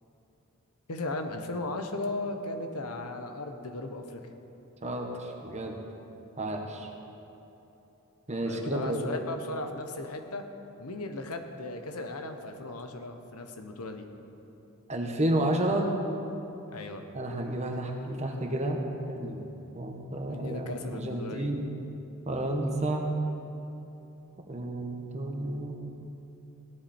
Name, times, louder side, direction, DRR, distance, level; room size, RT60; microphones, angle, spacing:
voice 1, 0.9-4.2 8.5-10.4 10.8-14.1 16.7-17.0 20.3-21.5, left 2 dB, 90° left, 6 dB, 1.1 m, -36 dB
voice 2, 4.8-5.8 6.4-6.9 8.3-9.0 14.9-15.9 17.1-18.8 19.1-19.4 19.7-21.6 22.3-23.1 24.5-25.8, right 1 dB, 30° right, 2 dB, 1.2 m, -31 dB
17.5 x 10.5 x 4.4 m, 3.0 s
head